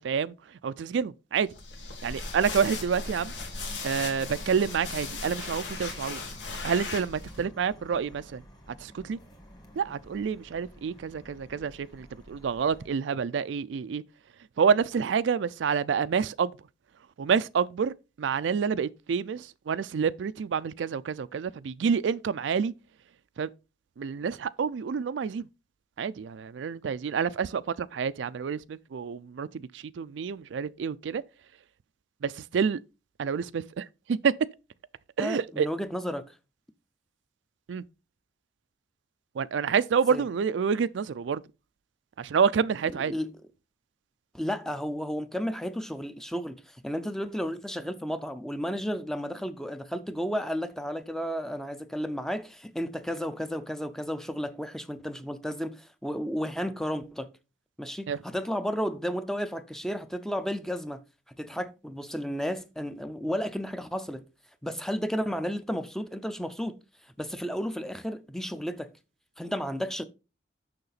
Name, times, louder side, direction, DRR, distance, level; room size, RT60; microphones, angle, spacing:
voice 1, 0.0-1.5 2.0-3.3 3.8-6.2 6.6-8.4 8.8-9.2 9.8-14.0 14.6-16.6 17.2-22.7 23.4-23.5 24.0-25.5 26.0-31.2 32.2-32.8 33.2-34.3 35.2-35.7 37.7-37.8 39.3-41.4 42.2-43.1 58.1-58.2, right 6 dB, 80° right, 0.4 m, -28 dB
sound 1, 1.5-7.4, left 3 dB, 85° left, 1.9 m, -37 dB
sound 2, 2.1-12.9, equal, 20° left, 1.6 m, -50 dB
voice 2, 35.2-36.4 40.1-40.3 42.9-43.3 44.3-57.3 57.8-61.0 61.4-64.2 64.6-66.8 67.2-68.9 69.4-70.0, equal, 5° left, 0.5 m, -33 dB
6.7 x 5.9 x 4.0 m
head